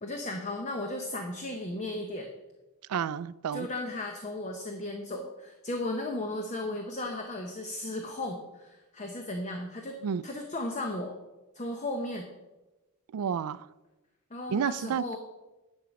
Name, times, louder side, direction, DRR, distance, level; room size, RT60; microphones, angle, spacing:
voice 1, 0.0-2.3 3.5-11.1 11.5-12.3 14.3-15.2, left 1 dB, 30° left, 4 dB, 0.8 m, -35 dB
voice 2, 2.9-3.7 10.0-10.2 13.1-13.7 14.5-15.0, right 7 dB, 85° right, 18 dB, 0.4 m, -30 dB
10.0 x 7.2 x 5.1 m, 1.1 s
head